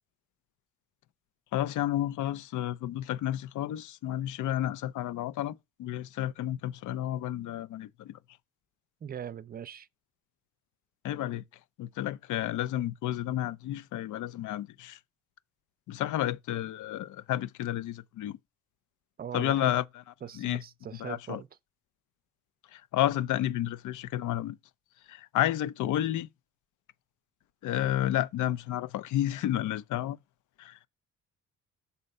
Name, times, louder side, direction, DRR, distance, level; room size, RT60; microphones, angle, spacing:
voice 1, 1.5-8.2 11.0-11.4 11.8-15.0 15.9-18.4 19.3-19.8 20.4-20.6 21.0-21.4 22.7-24.6 25.1-26.3 27.6-30.2 30.6-30.8, left 13 dB, 80° left, 0.6 m, -31 dB
voice 2, 9.0-9.9 19.2-19.7 20.2-21.5, right 8 dB, 30° right, 0.4 m, -40 dB
6.4 x 4.1 x 5.4 m
cardioid pair, 90°, 30 cm